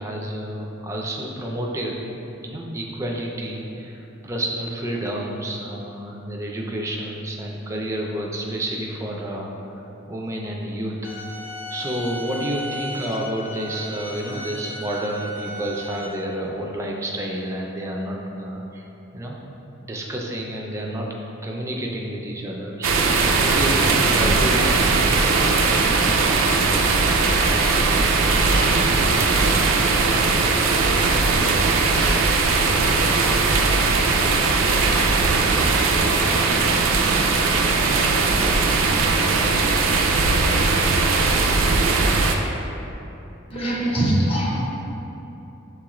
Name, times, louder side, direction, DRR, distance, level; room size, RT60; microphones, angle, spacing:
voice 1, 0.0-2.0 2.4-9.5 10.1-11.1 11.7-18.8 19.1-19.4 19.8-21.1 21.4-25.1, right 1 dB, 15° right, -1 dB, 0.4 m, -29 dB
sound 1, 11.0-16.1, left 1 dB, 90° left, 0.7 m, -35 dB
sound 2, 22.8-42.3, right 3 dB, 85° right, 0.4 m, -19 dB
voice 2, 43.5-44.6, right 1 dB, 30° left, -4 dB, 0.7 m, -22 dB
6.3 x 2.4 x 2.9 m, 3.0 s
head